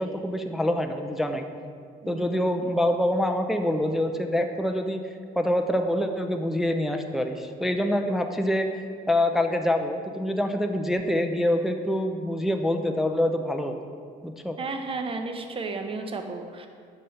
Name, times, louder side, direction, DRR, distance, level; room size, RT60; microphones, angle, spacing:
voice 1, 0.0-1.5 2.1-5.0 5.4-8.7 9.1-13.8 14.2-14.6, left 1 dB, ahead, 5 dB, 0.3 m, -25 dB
voice 2, 2.0-2.4 14.6-16.7, right 3 dB, 35° right, 5 dB, 0.7 m, -33 dB
6.4 x 5.3 x 4.4 m, 2.1 s
cardioid pair, 110°, 17 cm